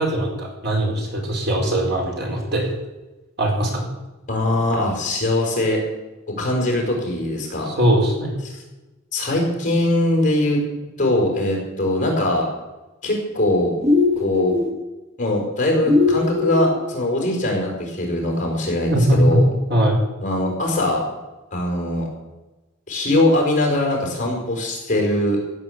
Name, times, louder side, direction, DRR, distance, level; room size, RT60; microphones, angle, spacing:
voice 1, 0.0-2.7 3.4-3.8 7.6-8.3 18.9-19.4 19.7-20.0, right 1 dB, 50° right, 0 dB, 4.7 m, -20 dB
voice 2, 4.3-5.8 6.4-7.7 8.5-8.6 9.1-10.6 11.0-12.4 13.0-13.7 14.2-14.6 15.2-19.5 20.2-21.0 21.5-22.1 22.9-25.4, left 1 dB, 40° left, 0 dB, 5.1 m, -21 dB
sound 1, 13.8-14.7 15.9-16.8, left 3 dB, 35° right, 1.8 m, -19 dB
15.5 x 8.2 x 8.1 m, 1.1 s
head